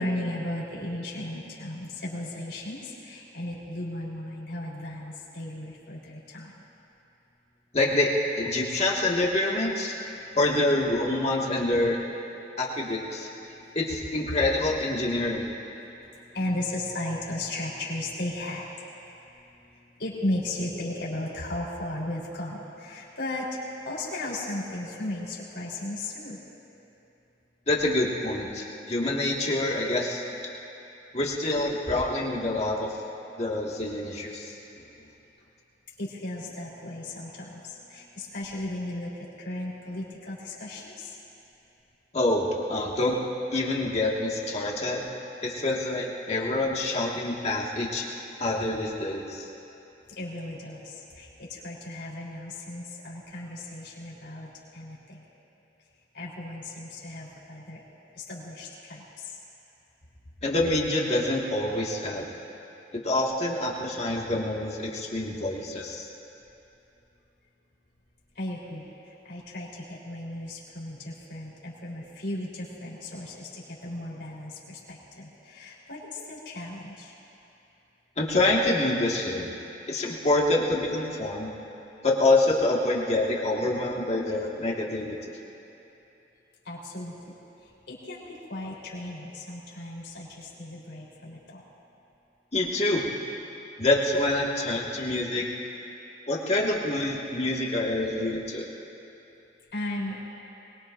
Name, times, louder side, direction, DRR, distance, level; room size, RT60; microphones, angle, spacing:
voice 1, 0.0-6.5 10.1-10.4 13.5-13.8 14.3-14.4 15.8-19.4 19.7-23.5 23.8-26.4 36.0-41.2 50.1-55.2 56.1-57.8 58.2-59.3 68.4-68.8 69.2-77.1 86.6-87.4 87.9-91.7 99.7-100.2, left 1 dB, 80° left, -6 dB, 3.8 m, -36 dB
voice 2, 7.7-9.9 10.3-12.0 12.6-13.3 13.7-15.5 27.7-30.2 31.1-32.9 33.4-34.8 42.1-43.2 43.5-45.1 45.4-48.0 48.4-49.5 60.4-62.3 62.9-66.1 78.2-79.5 79.9-81.5 82.0-85.3 92.5-93.0 93.8-95.5 96.3-98.7, left 2 dB, 35° left, -3 dB, 1.9 m, -26 dB
23.5 x 21.5 x 2.6 m, 2.9 s
head